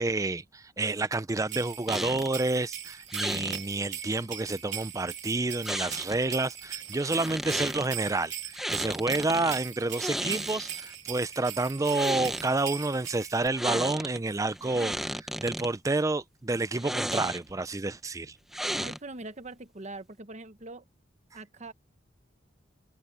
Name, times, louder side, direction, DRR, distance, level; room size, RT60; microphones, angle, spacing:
voice 1, 0.0-18.4, right 2 dB, 20° right, 0.5 m, -29 dB
sound 1, 1.5-13.5, right 10 dB, 80° right, 2.5 m, -40 dB
sound 2, 1.9-2.4 3.1-3.6 5.6-6.3 7.0-7.9 8.5-9.6 9.9-10.9 11.8-12.5 13.5-14.2 14.5-15.7 16.8-17.6 18.5-19.2, equal, ahead, 1.0 m, -34 dB
voice 2, 18.7-20.8 21.3-21.7, right 2 dB, 40° right, 1.0 m, -42 dB
head